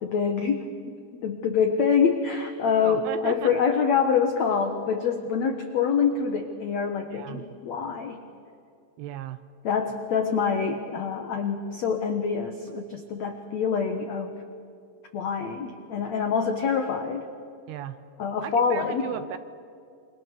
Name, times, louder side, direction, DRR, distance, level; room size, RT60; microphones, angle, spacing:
voice 1, 0.0-8.2 9.6-14.3 15.1-17.3 18.2-19.0, left 6 dB, 80° left, 5 dB, 1.5 m, -26 dB
voice 2, 2.8-3.6 7.1-7.4 9.0-9.4 17.7-18.0 18.4-19.4, right 11 dB, 75° right, 12 dB, 2.6 m, -35 dB
28.0 x 25.0 x 6.9 m, 2.4 s
omnidirectional pair, 5.1 m